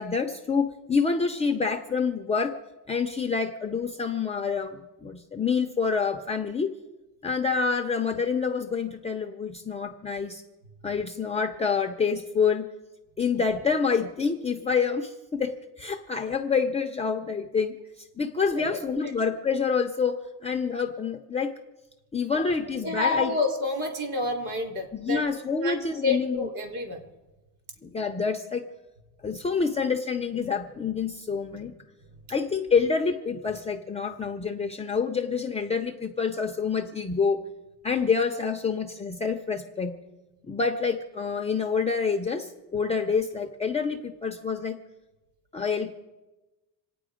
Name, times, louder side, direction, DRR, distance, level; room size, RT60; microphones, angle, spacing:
voice 1, 0.0-2.5 2.9-6.7 7.2-10.4 10.8-12.7 13.2-21.5 22.1-23.3 24.9-26.5 27.8-28.6 29.2-31.8 32.3-37.4 37.8-40.0 40.5-44.8 45.5-45.9, left 5 dB, 15° left, 3 dB, 0.5 m, -27 dB
voice 2, 18.5-19.1 22.3-22.5 22.8-25.2 25.6-27.0, left 3 dB, 50° right, 2 dB, 4.0 m, -29 dB
27.0 x 9.2 x 5.0 m, 1.1 s
cardioid pair, 160°, 46 cm